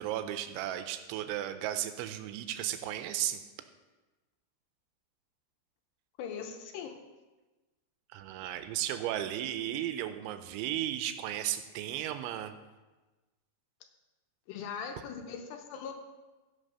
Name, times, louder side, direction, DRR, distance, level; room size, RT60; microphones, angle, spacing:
voice 1, 0.0-3.4 8.1-12.6, right 12 dB, 90° right, 9 dB, 3.1 m, -35 dB
voice 2, 6.2-7.0 14.5-16.0, left 6 dB, 80° left, 4 dB, 2.8 m, -40 dB
15.5 x 5.9 x 5.4 m, 1.2 s
omnidirectional pair, 5.3 m